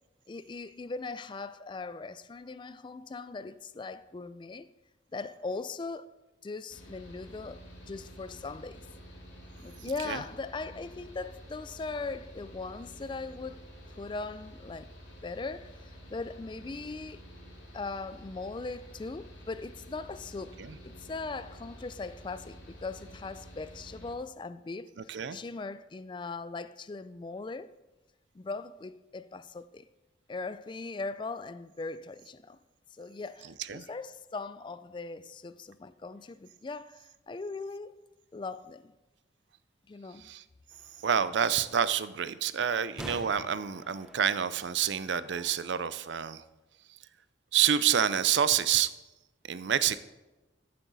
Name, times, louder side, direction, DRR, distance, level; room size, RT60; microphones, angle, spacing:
voice 1, 0.3-4.7 5.1-6.1 6.4-8.9 9.6-13.6 14.0-14.9 15.2-15.7 16.1-17.2 17.7-20.6 20.8-27.7 28.3-29.9 30.3-32.6 32.9-38.0 38.3-38.9 39.9-40.3, left 3 dB, 25° left, 0.3 m, -39 dB
Mechanical fan, 6.7-24.1, equal, 70° left, 3.0 m, -50 dB
voice 2, 9.8-10.2 20.6-20.8 25.0-25.4 33.4-33.9 40.2-40.4 41.0-46.4 47.5-48.9 49.5-50.0, right 8 dB, 70° right, 0.5 m, -28 dB
sound 1, 40.7-45.7, equal, ahead, 0.7 m, -49 dB
14.0 x 7.7 x 4.0 m
head